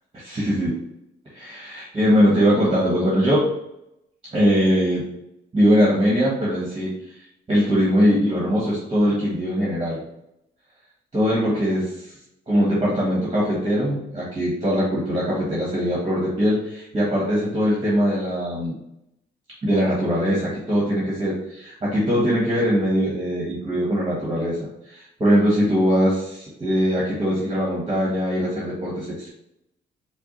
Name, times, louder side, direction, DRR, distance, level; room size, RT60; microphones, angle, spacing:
voice 1, 0.2-0.8 1.3-3.4 4.3-5.0 5.5-6.9 7.5-10.0 11.1-12.1 12.5-18.7 19.6-24.6 24.9-29.3, equal, 25° right, -7 dB, 1.6 m, -21 dB
4.5 x 2.4 x 3.9 m, 0.81 s
cardioid pair, 90°, 20 cm